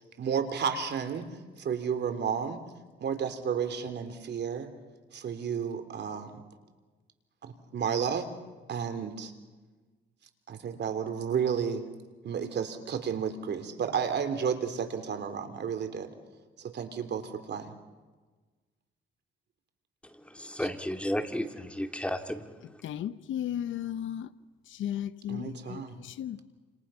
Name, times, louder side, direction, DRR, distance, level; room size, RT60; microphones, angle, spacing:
voice 1, 0.2-1.3 1.6-2.6 3.0-4.7 5.1-6.3 7.4-8.3 8.7-9.3 10.5-11.8 12.2-16.1 16.6-17.7 25.3-26.0, right 7 dB, 60° right, 3.4 m, -32 dB
voice 2, 20.3-22.5, equal, 5° left, 2.5 m, -33 dB
voice 3, 22.8-24.3 24.8-26.4, left 10 dB, 75° left, 1.1 m, -35 dB
30.0 x 28.0 x 5.8 m
cardioid pair, 90°, 20 cm